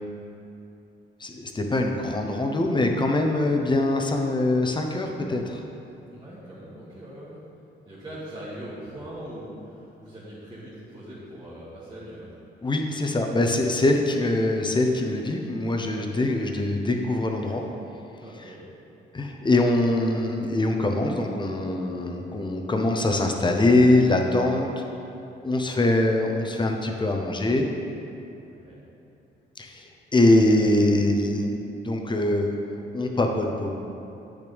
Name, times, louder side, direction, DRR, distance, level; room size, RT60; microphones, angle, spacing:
voice 1, 1.2-5.6 12.6-17.6 19.1-24.8 25.4-27.7 29.6-32.5 32.9-33.7, left 2 dB, 25° left, 3 dB, 0.8 m, -23 dB
voice 2, 6.1-7.4 7.9-12.3 17.4-17.6 18.2-18.6 28.4-28.8, right 1 dB, 20° right, -10 dB, 1.9 m, -41 dB
8.2 x 6.8 x 3.5 m, 2.7 s
cardioid pair, 90°, 20 cm